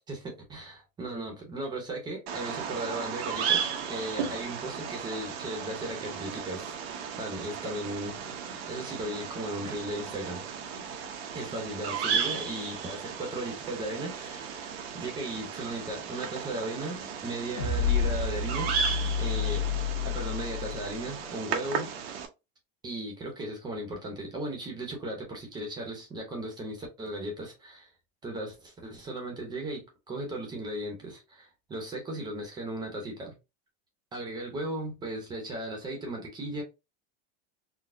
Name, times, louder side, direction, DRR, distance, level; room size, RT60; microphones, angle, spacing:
voice 1, 0.0-6.7 7.2-8.1 8.7-10.4 11.3-18.7 19.2-19.7 20.0-21.9 22.8-27.9 28.2-33.3 34.1-36.6, right 1 dB, 15° right, 0.7 m, -36 dB
Bird vocalization bird call bird song, 2.3-22.3, right 7 dB, 90° right, 0.9 m, -35 dB
sound 1, 17.6-21.0, left 6 dB, 80° left, 1.2 m, -29 dB
4.1 x 2.0 x 2.5 m
supercardioid pair, 170°, 30 cm